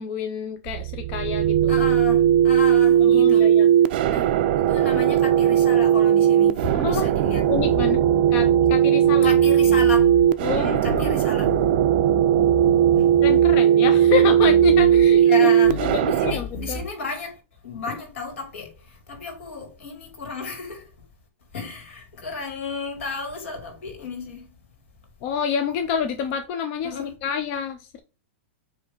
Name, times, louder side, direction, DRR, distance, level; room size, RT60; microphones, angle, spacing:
voice 1, 0.0-1.7 3.1-3.7 6.7-7.1 7.5-8.0 8.3-9.3 10.4-11.2 13.2-15.5 15.8-16.8 25.2-28.0, left 7 dB, 30° left, 0.4 m, -28 dB
sound 1, 0.7-16.3, right 10 dB, 40° right, 0.4 m, -18 dB
voice 2, 1.7-3.5 4.1-7.4 9.2-10.1 10.5-11.5 13.0-13.1 15.2-17.4 17.6-20.8 21.5-24.5 26.8-27.2, left 5 dB, 65° left, 2.7 m, -33 dB
sound 2, 7.2-8.8 9.0-10.3 10.8-11.2 11.4-13.6 13.8-15.1 15.6-16.0 16.2-16.8, left 3 dB, 45° left, 2.2 m, -33 dB
7.8 x 3.1 x 3.9 m
supercardioid pair, 170°, 7 cm